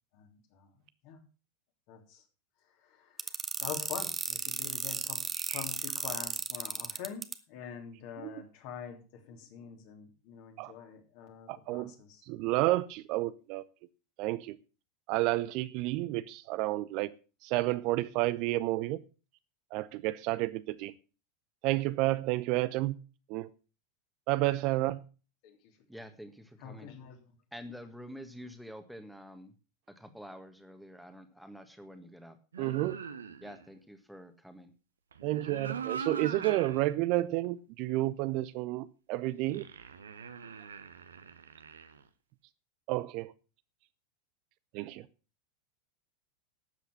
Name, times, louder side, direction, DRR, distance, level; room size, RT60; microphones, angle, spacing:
voice 1, 0.1-0.7 1.0-1.2 1.9-2.2 2.8-3.3 3.6-5.2 5.5-12.2 26.6-27.2, left 8 dB, 50° left, 3.1 m, -45 dB
sound 1, 3.2-7.3, right 5 dB, 20° right, 1.0 m, -34 dB
voice 2, 11.5-11.9 12.3-13.6 14.2-14.6 15.1-17.1 17.4-19.0 19.7-20.9 21.6-23.0 23.3-23.5 24.3-25.0 32.6-33.0 35.2-39.7 42.9-43.3 44.7-45.0, right 18 dB, 50° right, 0.7 m, -30 dB
voice 3, 25.9-26.9 27.5-29.5 30.0-32.7 33.4-34.7, equal, ahead, 1.7 m, -48 dB
sound 2, 32.5-33.7 35.1-36.9 37.4-37.5 39.4-42.0, right 6 dB, 75° right, 1.1 m, -42 dB
12.0 x 8.2 x 6.0 m
figure-of-eight pair, 85°, 0 cm